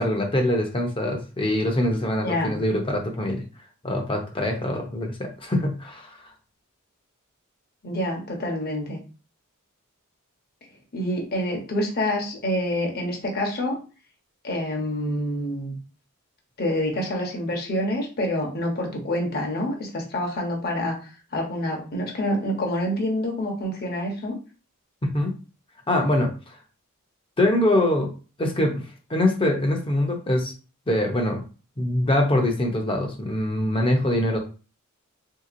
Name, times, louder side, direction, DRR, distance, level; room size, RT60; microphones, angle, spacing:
voice 1, 0.0-3.4 3.8-6.1 25.0-25.4 25.9-26.3 27.4-28.1 28.4-28.8 29.1-30.5 30.9-31.4 31.8-34.4, left 1 dB, 25° left, 2 dB, 0.7 m, -23 dB
voice 2, 2.2-2.6 7.8-9.0 10.9-13.8 14.4-15.7 16.6-21.0 21.3-24.4, left 1 dB, 45° left, 1 dB, 0.9 m, -27 dB
3.5 x 2.8 x 2.5 m, 0.35 s
head